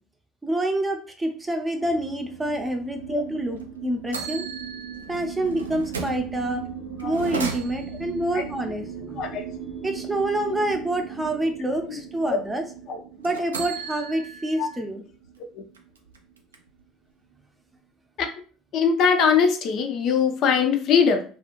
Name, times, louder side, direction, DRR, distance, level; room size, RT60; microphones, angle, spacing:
voice 1, 0.4-4.5 5.1-6.6 7.0-9.2 9.8-12.6 13.2-15.0, right 1 dB, 15° right, 4 dB, 0.6 m, -27 dB
sound 1, 1.8-16.4, right 7 dB, 90° left, 0.9 m, -38 dB
sound 2, 3.5-3.6 4.1-6.3 7.0-8.1 13.2-14.8 15.2-15.3 15.7-16.8, right 5 dB, 90° right, 0.3 m, -35 dB
voice 2, 18.7-21.2, left 6 dB, 55° left, 6 dB, 0.5 m, -21 dB
2.3 x 2.3 x 2.9 m, 0.41 s
hypercardioid pair, 65°, 0 cm